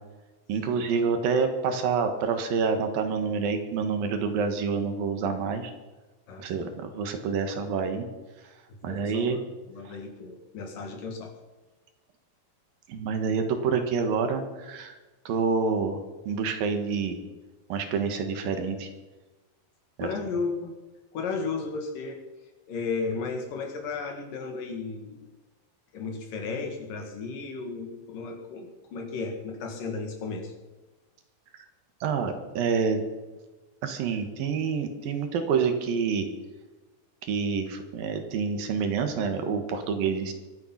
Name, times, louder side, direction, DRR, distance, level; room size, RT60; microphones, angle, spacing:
voice 1, 0.5-5.7 6.4-8.1 8.8-9.4 9.8-10.0 12.9-15.0 15.3-16.0 16.3-17.2 17.7-18.9 20.0-20.1 32.0-33.0 33.8-36.3 37.2-40.3, right 5 dB, 75° right, 6 dB, 3.2 m, -27 dB
voice 2, 6.3-6.7 8.7-9.4 9.7-11.3 20.0-20.7 21.1-22.2 22.7-25.2 25.9-30.5, left 4 dB, 65° left, 3 dB, 3.5 m, -34 dB
24.0 x 9.3 x 5.7 m, 1.2 s
omnidirectional pair, 4.2 m